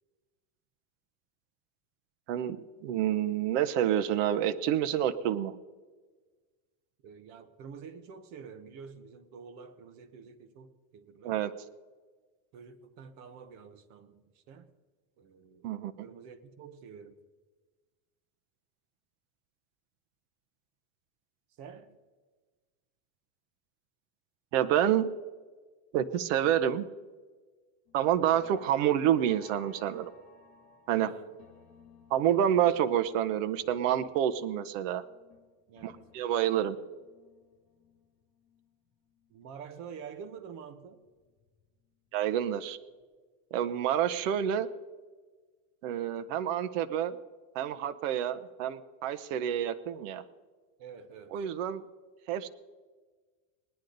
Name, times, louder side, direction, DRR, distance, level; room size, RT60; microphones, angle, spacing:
voice 1, 2.3-5.6 11.2-11.5 15.6-16.1 24.5-25.1 25.9-26.8 27.9-30.1 30.9-31.1 32.1-35.0 35.8-36.8 42.1-42.8 43.5-44.7 45.8-47.2 47.5-50.2 51.3-51.8 52.3-52.5, right 10 dB, 65° right, 0.9 m, -28 dB
voice 2, 7.0-11.3 12.5-14.7 15.2-15.7 16.0-17.2 21.6-22.0 30.9-31.3 35.7-36.0 39.3-41.0 50.8-51.4, right 6 dB, 45° right, 1.1 m, -48 dB
sound 1, 27.9-40.0 40.4-42.0 42.3-42.7 43.0-43.1, left 6 dB, 55° left, 2.0 m, -59 dB
20.0 x 10.0 x 3.9 m
cardioid pair, 175°, 40 cm